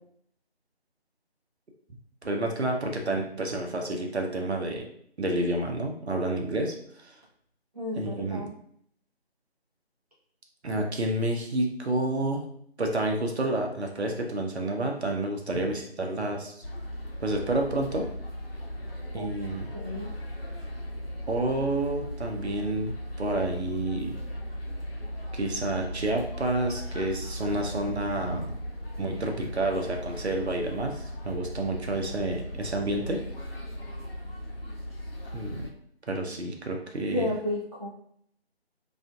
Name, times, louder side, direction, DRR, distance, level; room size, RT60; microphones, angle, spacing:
voice 1, 2.2-4.9 5.2-7.2 7.9-8.5 10.6-12.5 12.8-16.5 17.2-18.1 19.1-19.7 21.3-24.1 25.3-28.6 29.0-33.2 35.3-35.7 36.1-37.3, right 2 dB, 85° right, 2 dB, 0.7 m, -29 dB
voice 2, 7.7-8.5 19.1-19.3 19.7-20.1 37.1-37.9, left 1 dB, 35° right, -6 dB, 0.7 m, -32 dB
sound 1, 16.6-35.7, equal, 65° left, 0.8 m, -37 dB
2.5 x 2.4 x 2.3 m, 0.66 s
figure-of-eight pair, 160°, 32 cm